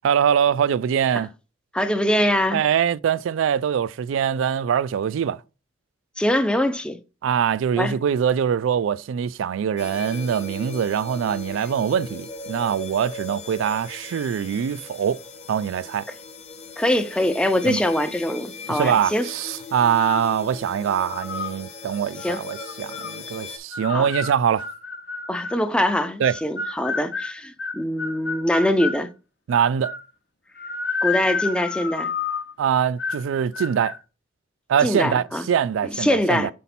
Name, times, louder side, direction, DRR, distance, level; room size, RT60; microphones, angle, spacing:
voice 1, 0.0-1.3 2.5-5.4 7.2-15.2 15.5-16.1 17.7-17.8 18.7-24.7 26.2-26.3 29.5-29.9 32.6-34.0 34.7-36.5, right 8 dB, 85° right, 0.3 m, -23 dB
voice 2, 1.7-2.6 6.2-7.0 7.8-7.9 16.8-19.3 22.2-22.4 23.9-24.1 25.3-29.1 31.0-32.1 34.8-35.5 35.8-36.5, left 1 dB, 5° left, 0.4 m, -23 dB
sound 1, 9.8-23.6, left 3 dB, 35° left, 1.0 m, -38 dB
sound 2, 20.0-20.4 20.9-21.5 22.2-23.2 23.7-25.6 26.2-29.0 29.5-30.1 30.6-32.5 33.0-33.3 33.5-34.0, left 4 dB, 65° left, 0.8 m, -30 dB
5.6 x 4.1 x 4.1 m
head